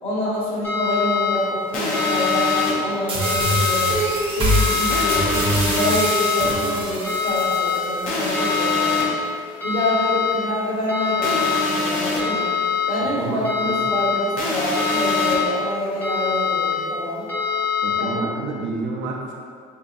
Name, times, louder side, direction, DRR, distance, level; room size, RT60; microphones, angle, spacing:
voice 1, 0.0-4.0 4.3-9.1 9.6-12.5 12.9-17.3 17.9-18.3, equal, 30° left, -7 dB, 1.0 m, -26 dB
sound 1, 0.6-1.4 1.9-2.7 3.2-3.9 4.5-5.2 5.8-6.5 7.0-7.8 8.3-9.1 9.6-10.3 10.9-11.6 12.2-12.9 13.4-14.2 14.7-15.5 16.0-16.7 17.3-18.0, left 7 dB, 10° left, 0.6 m, -23 dB
sound 2, 1.7-2.7 4.9-5.9 8.1-9.0 11.2-12.2 14.4-15.4, left 2 dB, 50° left, 0.6 m, -25 dB
sound 3, 3.1-8.1, right 1 dB, 30° right, 0.7 m, -24 dB
voice 2, 13.0-13.8 17.8-19.3, right 3 dB, 80° right, -2 dB, 0.6 m, -30 dB
3.5 x 2.8 x 2.5 m, 2.1 s
cardioid pair, 145°, 19 cm